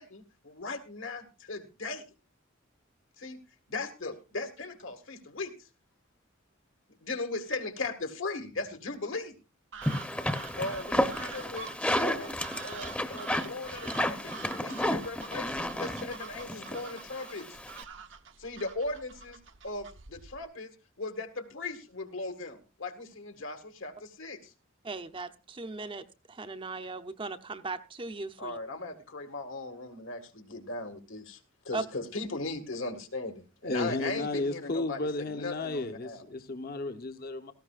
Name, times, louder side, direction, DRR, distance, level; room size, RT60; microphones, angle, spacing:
voice 1, 0.0-2.0 3.2-3.4 3.7-5.5 7.0-9.4 10.6-11.7 12.0-12.3 12.6-17.6 18.4-19.4 19.6-20.7 21.0-24.5 28.4-31.4 31.7-36.2, left 3 dB, 75° left, 1.8 m, -38 dB
sound 1, 9.7-20.4, right 5 dB, 65° right, 0.9 m, -46 dB
sound 2, 9.8-17.8, left 1 dB, 5° left, 0.8 m, -32 dB
voice 2, 24.8-28.6 31.7-31.8, right 3 dB, 25° right, 0.7 m, -38 dB
voice 3, 33.6-37.5, left 2 dB, 50° left, 0.9 m, -33 dB
17.5 x 14.5 x 2.4 m
head